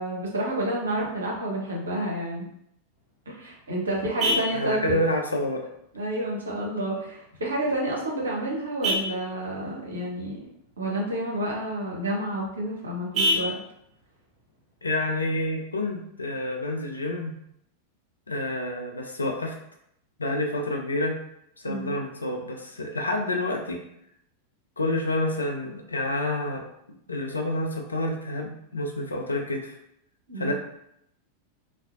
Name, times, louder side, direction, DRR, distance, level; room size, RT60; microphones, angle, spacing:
voice 1, 0.0-2.5 3.3-5.0 5.9-10.4 10.8-13.6 21.6-22.0 30.3-30.5, right 1 dB, 70° right, -3 dB, 0.7 m, -29 dB
Vehicle horn car horn honking, 2.9-15.9, equal, 30° right, 0.7 m, -34 dB
voice 2, 4.5-5.7 14.8-17.4 18.3-19.5 20.2-21.2 21.6-23.8 24.8-26.6 27.1-29.7 30.4-30.5, left 1 dB, 80° left, 2 dB, 0.4 m, -28 dB
2.5 x 2.1 x 2.4 m, 0.75 s
figure-of-eight pair, 90°, 0 cm